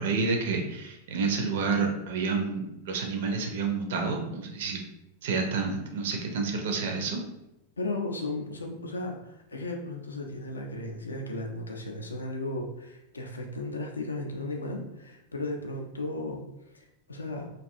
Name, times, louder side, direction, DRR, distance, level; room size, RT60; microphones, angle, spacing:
voice 1, 0.0-4.8 5.2-7.2, right 4 dB, 55° right, 3 dB, 0.4 m, -29 dB
voice 2, 7.8-16.4 16.7-17.5, left 2 dB, 75° left, 2 dB, 0.4 m, -35 dB
2.5 x 2.2 x 2.5 m, 0.89 s
figure-of-eight pair, 90°, 0 cm